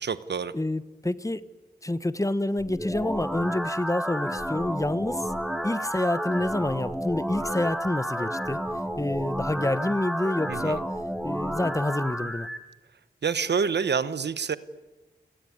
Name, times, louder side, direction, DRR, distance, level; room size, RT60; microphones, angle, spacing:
voice 1, 0.0-0.5 10.5-10.8 13.2-14.6, right 6 dB, 75° right, 15 dB, 1.1 m, -27 dB
voice 2, 0.5-1.4 1.8-5.3 5.6-8.6 9.0-10.8 11.2-12.5, left 1 dB, 20° left, 15 dB, 1.1 m, -28 dB
sound 1, 2.6-12.6, equal, ahead, 2.4 m, -31 dB
29.5 x 18.5 x 9.5 m, 1.1 s
wide cardioid pair, 70°, 18 cm